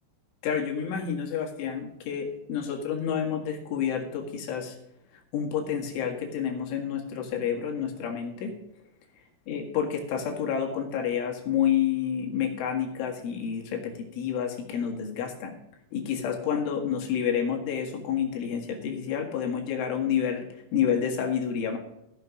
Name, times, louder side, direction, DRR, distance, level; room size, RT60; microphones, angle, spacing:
voice 1, 0.4-4.8 5.3-8.5 9.5-15.6 15.9-21.8, left 8 dB, 70° left, 1 dB, 4.3 m, -29 dB
15.5 x 7.1 x 5.0 m, 0.86 s
omnidirectional pair, 5.9 m